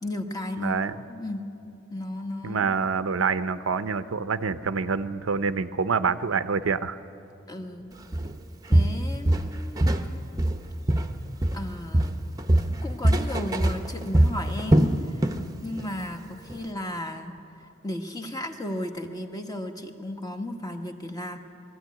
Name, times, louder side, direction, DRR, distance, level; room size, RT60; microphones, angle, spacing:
voice 1, 0.0-0.8 1.1-1.4 1.9-2.7 7.5-7.9 8.7-9.8 11.5-12.2 12.7-15.3 15.6-17.3 17.8-21.4, left 1 dB, 20° left, 4 dB, 1.2 m, -34 dB
voice 2, 0.6-0.9 2.4-7.0, right 5 dB, 85° right, 12 dB, 0.6 m, -26 dB
Walk footsteps, 8.1-8.3 8.7-10.1 10.4-11.7 11.9-15.5 15.8-16.0 16.5-16.6, right 1 dB, 20° right, 0.8 m, -22 dB
21.0 x 13.5 x 9.4 m, 2.8 s
head